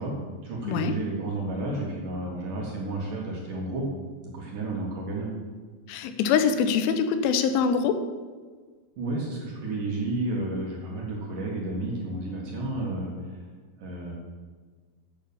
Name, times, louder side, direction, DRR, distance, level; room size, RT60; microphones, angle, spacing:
voice 1, 0.0-3.9 4.2-5.3 9.0-13.4 13.8-14.1, right 2 dB, 55° right, -2 dB, 2.7 m, -31 dB
voice 2, 0.6-1.0 5.9-8.0, left 6 dB, 85° left, 9 dB, 3.2 m, -24 dB
8.8 x 8.2 x 7.0 m, 1.5 s
omnidirectional pair, 5.4 m